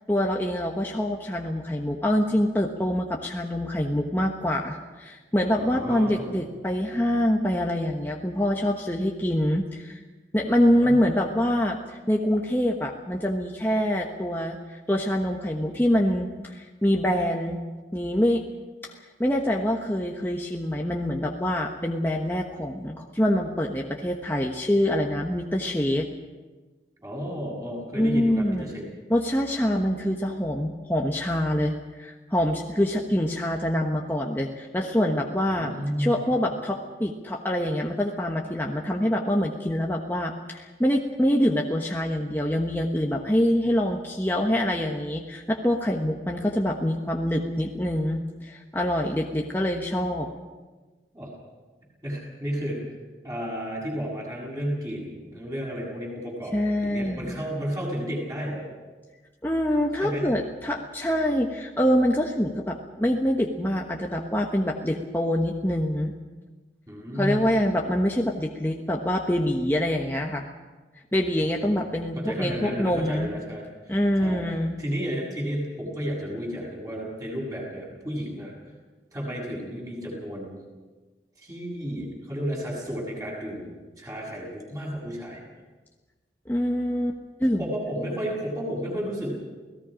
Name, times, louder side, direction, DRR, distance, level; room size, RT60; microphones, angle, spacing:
voice 1, 0.1-10.0 10.3-17.6 17.9-18.4 18.8-18.9 19.2-26.1 28.0-28.7 29.1-31.7 32.0-35.7 36.0-50.3 56.5-57.4 59.4-66.1 67.2-70.5 71.1-73.3 73.9-74.8 86.5-87.6, equal, 10° left, 0 dB, 1.2 m, -25 dB
voice 2, 5.5-6.3 10.8-11.0 27.0-28.8 35.5-36.4 51.1-51.3 52.0-52.9 53.2-58.7 60.0-60.3 66.9-67.6 71.4-71.8 72.2-78.5 79.1-80.6 81.4-85.4 87.6-89.3, equal, 20° right, -2 dB, 7.2 m, -32 dB
29.0 x 18.0 x 5.1 m, 1.3 s
head